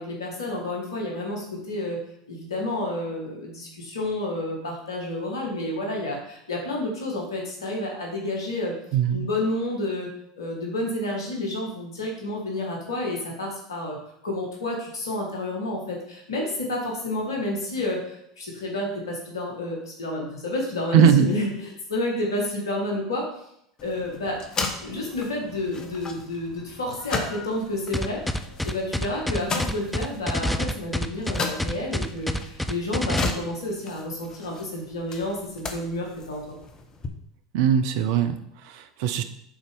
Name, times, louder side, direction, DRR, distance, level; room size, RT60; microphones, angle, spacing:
voice 1, 0.0-2.0 2.3-8.7 9.1-10.1 10.4-14.0 14.2-23.3 23.8-24.4 24.8-28.2 28.6-36.6, left 1 dB, 80° left, -1 dB, 2.1 m, -30 dB
voice 2, 8.9-9.3 20.9-21.3 37.5-39.2, right 8 dB, 60° right, 10 dB, 0.7 m, -20 dB
sound 1, 23.8-37.1, left 4 dB, 30° left, 1.2 m, -36 dB
sound 2, 27.9-33.3, left 1 dB, 5° left, 0.6 m, -27 dB
7.2 x 4.4 x 5.4 m, 0.73 s
hypercardioid pair, 80°, 2 cm